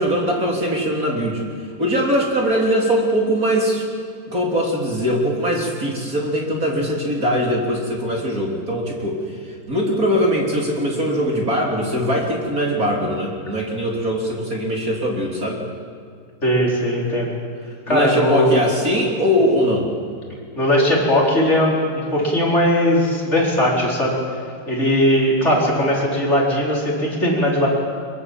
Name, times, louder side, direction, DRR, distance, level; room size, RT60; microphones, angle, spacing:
voice 1, 0.0-1.5 1.8-3.8 4.3-9.2 9.7-15.6 17.9-19.9, equal, 20° right, -1 dB, 2.9 m, -21 dB
voice 2, 16.4-17.4 17.9-18.6 20.6-24.2 24.7-27.7, equal, 15° left, -3 dB, 4.5 m, -18 dB
24.0 x 22.5 x 7.7 m, 2.2 s
omnidirectional pair, 5.5 m